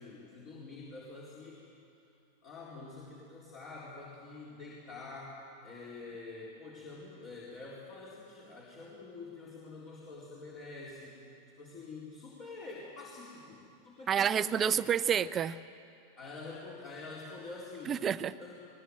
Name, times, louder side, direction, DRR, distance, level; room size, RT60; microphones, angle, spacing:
voice 1, 0.0-1.9 2.4-14.6 16.2-18.0 18.4-18.5, left 3 dB, 40° left, -6 dB, 4.2 m, -47 dB
voice 2, 14.1-15.6 17.9-18.3, right 8 dB, 25° right, 15 dB, 0.6 m, -29 dB
21.0 x 20.5 x 8.0 m, 2.6 s
figure-of-eight pair, 90°, 0 cm